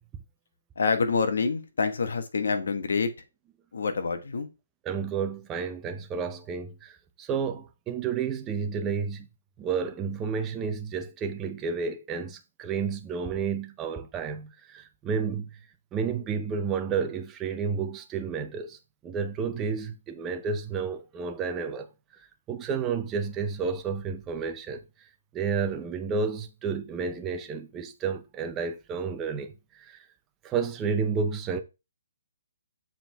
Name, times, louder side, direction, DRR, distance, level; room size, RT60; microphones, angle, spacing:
voice 1, 0.7-3.1 3.7-4.5, left 4 dB, 70° left, 1.4 m, -27 dB
voice 2, 4.9-6.9 7.2-9.3 9.6-15.5 15.9-18.8 19.0-21.9 22.5-24.8 25.3-29.5 29.8-30.0 30.4-31.6, right 6 dB, 10° right, 0.6 m, -31 dB
7.2 x 4.6 x 3.5 m
hypercardioid pair, 170°, 0 cm